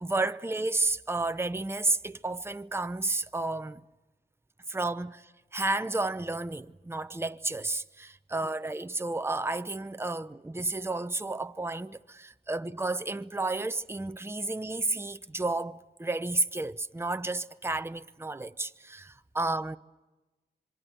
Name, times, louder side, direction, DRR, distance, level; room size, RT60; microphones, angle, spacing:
voice 1, 0.0-3.8 4.7-19.8, right 2 dB, 15° right, 0.8 m, -32 dB
26.5 x 23.0 x 7.8 m
cardioid pair, 60°, 17 cm